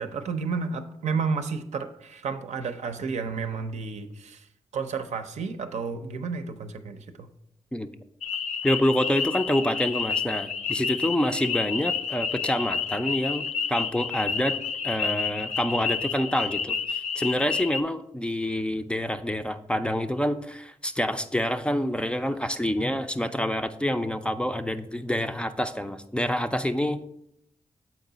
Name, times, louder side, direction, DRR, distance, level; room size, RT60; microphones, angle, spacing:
voice 1, 0.0-4.5 4.7-7.3, right 5 dB, 80° right, 8 dB, 0.6 m, -31 dB
sound 1, 8.2-17.8, left 6 dB, 80° left, 0.4 m, -30 dB
voice 2, 8.6-14.6 14.8-27.0, equal, 10° left, 9 dB, 0.4 m, -27 dB
7.2 x 4.7 x 3.9 m, 0.78 s
cardioid pair, 90°, 12 cm